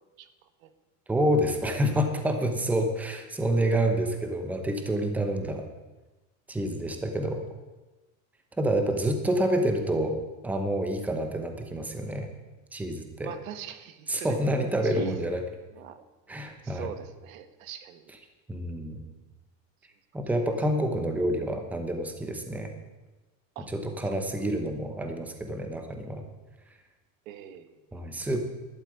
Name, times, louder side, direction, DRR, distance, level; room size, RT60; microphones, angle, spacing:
voice 1, 0.2-0.7 6.9-7.1 13.2-14.3 14.8-15.2 15.7-16.0 16.6-18.1 23.5-23.7 24.0-24.2 27.2-28.0, right 10 dB, 90° right, 11 dB, 1.4 m, -42 dB
voice 2, 1.1-5.7 6.5-7.5 8.6-10.2 10.4-12.3 12.7-13.3 14.1-15.4 16.3-16.9 18.5-19.0 20.1-22.7 23.7-26.2 27.9-28.4, right 1 dB, 5° right, 5 dB, 1.0 m, -28 dB
12.0 x 8.2 x 9.6 m, 1.1 s
supercardioid pair, 175°, 40 cm